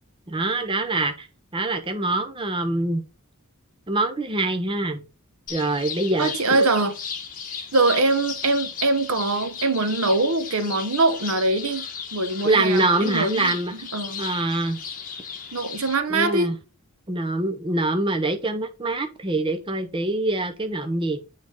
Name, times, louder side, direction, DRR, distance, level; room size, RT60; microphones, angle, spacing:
voice 1, 0.3-1.3 1.5-3.0 3.9-5.0 5.5-6.7 12.4-13.7 14.2-14.8 16.1-16.5 17.1-21.2, right 2 dB, 20° right, 0.7 m, -24 dB
sound 1, 5.5-16.0, left 7 dB, 35° left, 1.3 m, -36 dB
voice 2, 6.2-6.9 7.7-14.2 15.5-16.5, right 2 dB, 75° right, 1.0 m, -23 dB
7.5 x 4.0 x 4.9 m
head